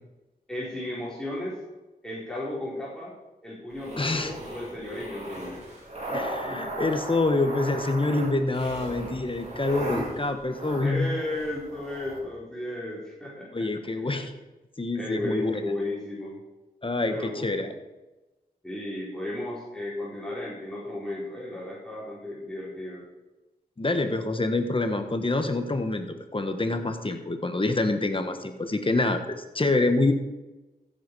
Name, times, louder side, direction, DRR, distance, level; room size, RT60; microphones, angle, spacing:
voice 1, 0.5-1.6 2.0-3.1 3.4-5.6 6.1-6.6 9.9-10.1 10.8-14.1 14.9-16.4 17.0-17.5 18.6-23.0, left 1 dB, 5° left, -7 dB, 4.7 m, -34 dB
sound 1, 3.7-12.2, right 1 dB, 45° right, 4.2 m, -37 dB
voice 2, 4.0-4.3 6.1-11.1 13.5-14.3 14.8-15.6 16.8-17.7 23.8-30.1, left 2 dB, 35° left, 7 dB, 1.5 m, -26 dB
15.0 x 8.2 x 4.9 m, 1.1 s
wide cardioid pair, 65°, 16 cm